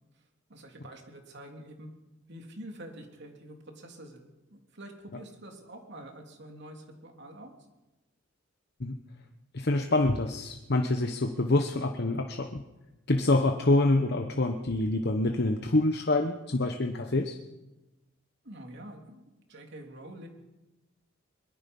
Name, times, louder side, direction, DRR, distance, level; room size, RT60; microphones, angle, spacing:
voice 1, 0.5-1.9 2.3-7.5 18.4-19.2 19.5-20.3, right 1 dB, 55° right, 3 dB, 3.3 m, -46 dB
voice 2, 9.5-12.6 13.1-17.4, left 2 dB, 50° left, 6 dB, 1.1 m, -26 dB
22.5 x 22.5 x 5.5 m, 1.0 s
head